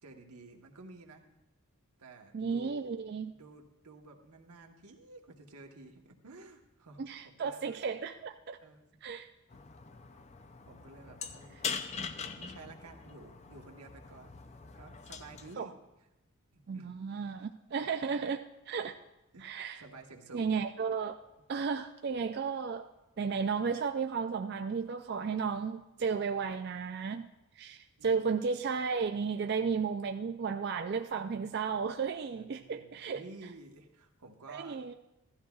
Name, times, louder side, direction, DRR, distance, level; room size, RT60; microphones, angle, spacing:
voice 1, 0.0-1.2 2.0-2.9 3.3-7.8 8.6-8.9 9.5-9.6 10.1-10.3 10.7-11.8 12.4-14.4 14.7-15.7 16.5-16.9 17.8-18.2 19.3-19.5 19.7-20.5 28.0-28.3 32.3-34.8, right 3 dB, 90° right, 3 dB, 1.2 m, -52 dB
voice 2, 2.3-3.3 7.0-8.6 9.0-9.3 15.6-15.7 16.7-18.4 18.7-18.9 19.4-19.8 20.3-21.2 21.5-22.9 23.2-27.3 27.6-33.2 34.5-34.9, right 5 dB, 45° right, 7 dB, 0.3 m, -33 dB
sound 1, 9.5-15.5, left 6 dB, 30° left, 0.4 m, -42 dB
15.5 x 12.5 x 2.4 m, 0.93 s
head